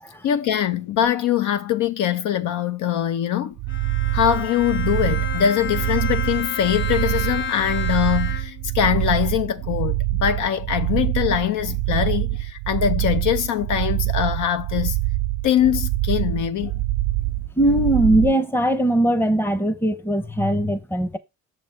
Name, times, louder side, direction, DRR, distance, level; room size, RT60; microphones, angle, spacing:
voice 1, 0.2-3.5 4.1-15.0 15.4-16.8, left 10 dB, 80° left, 0.8 m, -22 dB
sound 1, 3.6-18.3, right 18 dB, 75° right, 0.6 m, -25 dB
Bowed string instrument, 3.7-8.7, left 8 dB, 40° left, 0.7 m, -31 dB
voice 2, 17.6-21.2, right 1 dB, 5° left, 0.7 m, -20 dB
6.7 x 3.3 x 5.6 m
cardioid pair, 90°, 30 cm